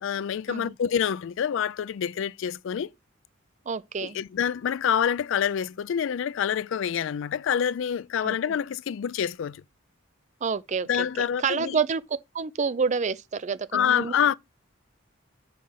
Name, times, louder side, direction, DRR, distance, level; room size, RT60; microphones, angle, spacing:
voice 1, 0.0-2.9 4.0-9.6 10.9-11.8 13.7-14.3, left 8 dB, 65° left, 0.3 m, -27 dB
voice 2, 3.7-4.2 8.2-8.6 10.4-11.1 11.4-14.1, right 5 dB, 35° right, 0.4 m, -28 dB
5.8 x 4.9 x 5.5 m
head